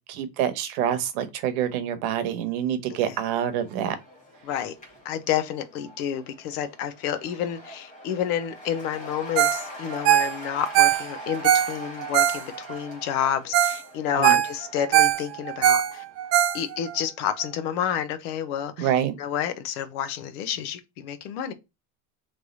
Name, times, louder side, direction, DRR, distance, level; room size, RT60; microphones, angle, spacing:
voice 1, 0.1-4.0 14.2-14.4 18.8-19.1, right 9 dB, 70° right, 1.0 m, -26 dB
Cheering / Applause / Crowd, 3.2-16.5, left 1 dB, 15° left, 1.3 m, -44 dB
voice 2, 4.4-4.7 5.0-16.0 16.5-18.9 19.2-21.5, left 9 dB, 70° left, 1.0 m, -29 dB
Ringtone, 9.4-9.7 9.9-12.8 13.2-13.3 13.5-13.8 14.1-17.0 17.4-17.5, right 12 dB, 35° right, 0.4 m, -21 dB
3.3 x 3.2 x 4.0 m
supercardioid pair, 145°, 45 cm